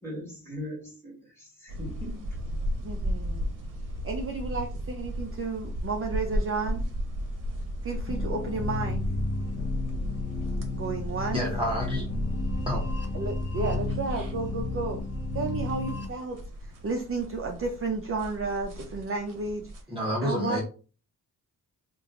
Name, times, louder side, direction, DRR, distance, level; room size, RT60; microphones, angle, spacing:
voice 1, 0.0-2.4, left 1 dB, 5° left, 1.9 m, -40 dB
sound 1, 1.7-19.8, equal, 65° right, 1.0 m, -35 dB
voice 2, 2.8-3.5 4.0-6.8 7.8-9.0 10.7-11.4 13.1-15.0 15.3-16.4 16.8-19.7 20.2-20.6, right 4 dB, 40° right, 0.6 m, -32 dB
sound 2, 8.1-16.1, left 3 dB, 45° left, 0.8 m, -33 dB
voice 3, 11.3-12.1 12.7-12.8 19.9-20.6, equal, 15° right, 1.0 m, -29 dB
3.0 x 2.6 x 3.7 m
cardioid pair, 95°, 34 cm